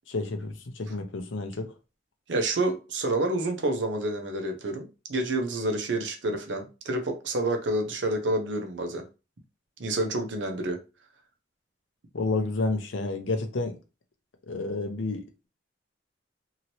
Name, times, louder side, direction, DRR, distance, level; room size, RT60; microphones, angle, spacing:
voice 1, 0.1-1.7 12.1-13.8 14.5-15.5, left 3 dB, 90° left, 0.7 m, -30 dB
voice 2, 2.3-9.0 9.8-10.8, right 2 dB, 70° right, 0.8 m, -28 dB
3.0 x 2.8 x 2.8 m
head